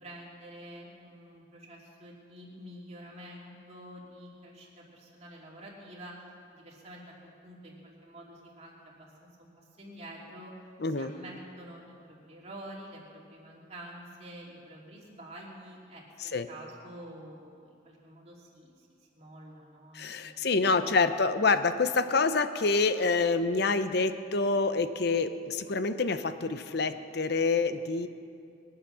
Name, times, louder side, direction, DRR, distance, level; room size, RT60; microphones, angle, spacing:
voice 1, 0.0-6.2 6.5-7.0 7.4-10.5 11.0-18.9 19.1-21.1, right 1 dB, 35° right, -3 dB, 2.9 m, -48 dB
voice 2, 10.8-11.1 16.2-16.5 19.9-28.1, left 4 dB, 55° left, 11 dB, 0.7 m, -27 dB
22.0 x 8.8 x 6.3 m, 2.4 s
head